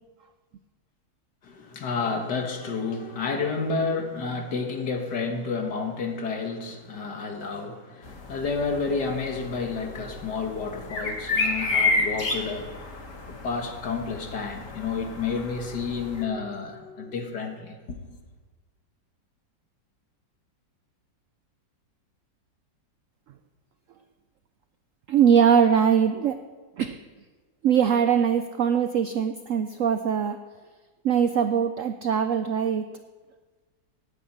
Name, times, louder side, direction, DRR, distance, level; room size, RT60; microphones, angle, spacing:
voice 1, 1.4-12.8 13.3-18.2, left 4 dB, 60° left, 4 dB, 2.0 m, -30 dB
sound 1, 8.0-16.2, left 3 dB, 45° left, 1.8 m, -31 dB
voice 2, 25.1-26.4 26.8-27.0 27.6-30.4 31.0-32.9, right 7 dB, 90° right, 9 dB, 0.7 m, -21 dB
9.7 x 9.4 x 8.6 m, 1.4 s
omnidirectional pair, 2.0 m